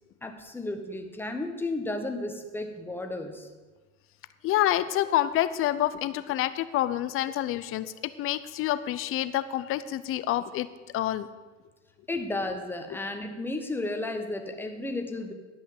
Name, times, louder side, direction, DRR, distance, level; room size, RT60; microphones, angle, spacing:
voice 1, 0.2-3.5 12.1-15.3, left 2 dB, 5° left, 4 dB, 1.2 m, -33 dB
voice 2, 4.4-7.9 8.2-10.7 10.9-11.3, left 13 dB, 35° left, 14 dB, 0.6 m, -27 dB
10.5 x 5.7 x 7.8 m, 1.3 s
hypercardioid pair, 95°, 37 cm